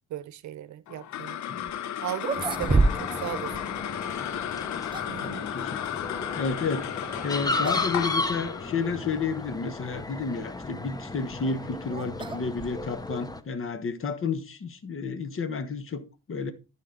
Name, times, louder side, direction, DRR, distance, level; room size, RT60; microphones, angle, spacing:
voice 1, 0.1-1.4 2.0-3.5 5.1-5.4, right 12 dB, 70° right, 0.7 m, -36 dB
sound 1, 0.9-11.5, left 10 dB, 70° left, 0.7 m, -35 dB
sound 2, 1.7-1.8 2.2-3.3 3.5-3.7 4.5-5.3 7.1-7.3 7.6-7.9 8.2-8.3 9.1-9.2 11.0-13.1, right 2 dB, 15° right, 0.9 m, -29 dB
sound 3, 2.3-13.4, left 2 dB, 15° left, 0.8 m, -35 dB
voice 2, 5.2-5.8 6.3-6.9 7.2-16.5, left 4 dB, 45° left, 1.3 m, -31 dB
12.5 x 5.2 x 3.9 m
cardioid pair, 90°, 30 cm